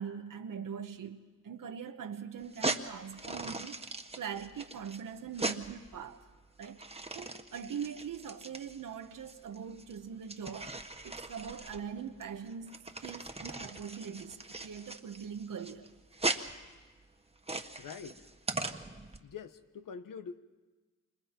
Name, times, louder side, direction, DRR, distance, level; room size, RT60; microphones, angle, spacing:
voice 1, 0.0-3.8 4.2-6.2 6.6-6.8 7.1-10.7 11.0-15.9, right 7 dB, 85° right, 1.1 m, -42 dB
sound 1, 2.4-19.2, right 2 dB, 20° right, 1.5 m, -40 dB
voice 2, 17.8-18.3 19.2-20.4, left 6 dB, 90° left, 1.0 m, -45 dB
28.5 x 26.5 x 4.4 m
cardioid pair, 50°, 32 cm